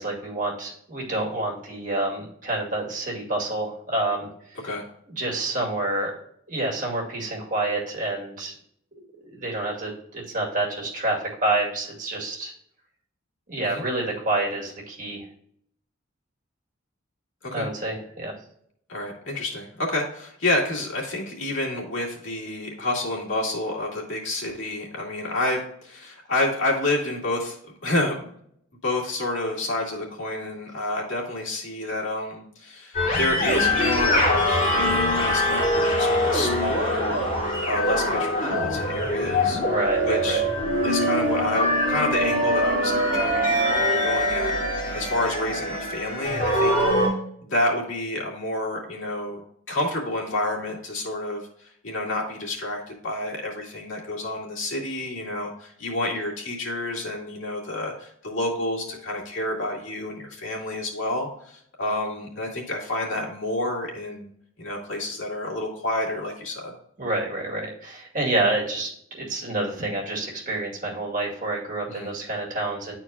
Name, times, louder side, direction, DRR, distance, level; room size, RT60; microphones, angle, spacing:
voice 1, 0.0-4.3 5.2-6.1 6.5-8.5 9.2-12.5 13.5-15.3 17.5-18.3 39.7-40.4 67.0-73.0, right 2 dB, 40° right, -3 dB, 2.3 m, -28 dB
voice 2, 18.9-28.3 28.8-37.2 37.6-39.6 40.0-40.4 40.8-43.4 43.7-46.7 47.4-49.4 49.7-64.3 64.6-66.7 71.9-72.1, left 1 dB, 70° left, -2 dB, 2.2 m, -29 dB
sound 1, 32.9-47.1, equal, 40° left, 2.9 m, -23 dB
11.0 x 4.5 x 2.4 m, 0.67 s
head